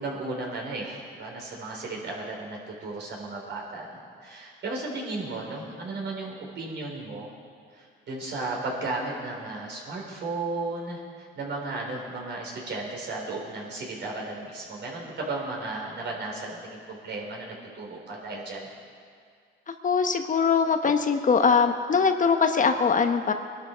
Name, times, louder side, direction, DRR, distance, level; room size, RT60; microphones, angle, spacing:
voice 1, 0.0-7.3 7.7-16.6 16.9-18.7, right 2 dB, 60° right, -2 dB, 4.1 m, -34 dB
voice 2, 19.8-23.3, left 5 dB, 40° left, 6 dB, 1.0 m, -22 dB
21.5 x 12.0 x 4.6 m, 2.2 s
cardioid pair, 90°, 20 cm